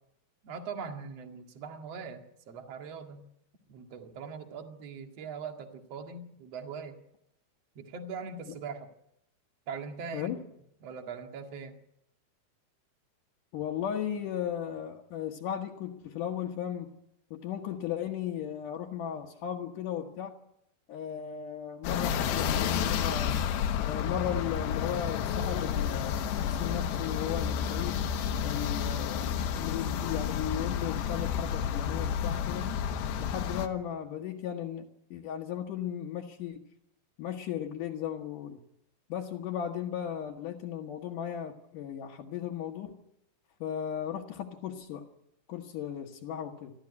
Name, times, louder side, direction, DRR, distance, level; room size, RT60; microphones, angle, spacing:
voice 1, 0.4-3.2 3.7-7.0 7.8-8.9 9.7-10.4 10.8-11.8, right 5 dB, 45° right, 5 dB, 2.6 m, -41 dB
voice 2, 13.5-16.9 17.3-20.3 20.9-23.4 23.8-28.0 28.4-32.7 33.2-36.6 37.2-38.6 39.1-43.0 43.6-45.1 45.5-46.7, left 9 dB, 60° left, -1 dB, 2.6 m, -36 dB
sound 1, 21.8-33.7, left 8 dB, 90° left, 3.5 m, -31 dB
28.5 x 13.0 x 9.8 m, 0.81 s
omnidirectional pair, 4.8 m